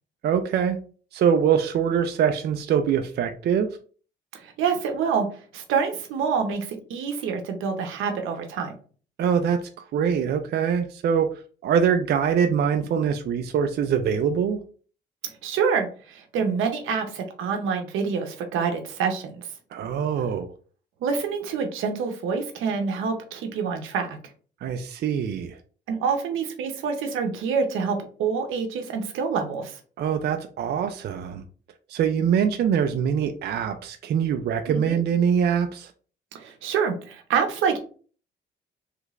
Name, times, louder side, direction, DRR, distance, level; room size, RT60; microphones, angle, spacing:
voice 1, 0.2-0.8 1.1-3.8 9.2-9.6 9.9-14.6 19.7-20.5 24.6-25.6 30.0-31.4 31.9-35.9, right 7 dB, 55° right, 6 dB, 0.4 m, -23 dB
voice 2, 4.3-5.3 5.5-8.7 15.2-19.5 21.0-24.2 25.9-29.8 34.7-35.0 36.3-37.8, right 6 dB, 85° right, 5 dB, 0.7 m, -27 dB
3.3 x 3.1 x 2.4 m, 0.41 s
cardioid pair, 90°, 20 cm